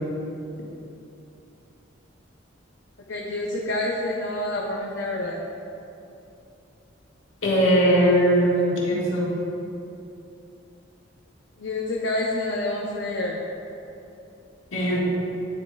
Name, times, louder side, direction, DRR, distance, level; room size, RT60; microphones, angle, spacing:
voice 1, 3.1-5.4 11.6-13.4, left 2 dB, 65° left, -2 dB, 0.7 m, -28 dB
voice 2, 7.4-9.3 14.7-15.0, equal, 85° left, -5 dB, 1.8 m, -20 dB
10.5 x 8.1 x 2.3 m, 2.8 s
head